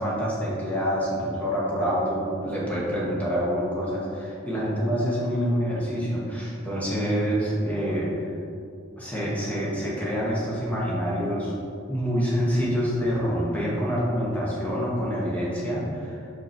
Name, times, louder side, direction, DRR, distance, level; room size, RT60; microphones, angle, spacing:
voice 1, 0.0-8.4 9.0-11.5 11.9-16.3, equal, 10° left, -6 dB, 1.6 m, -26 dB
5.8 x 5.4 x 4.5 m, 2.4 s
head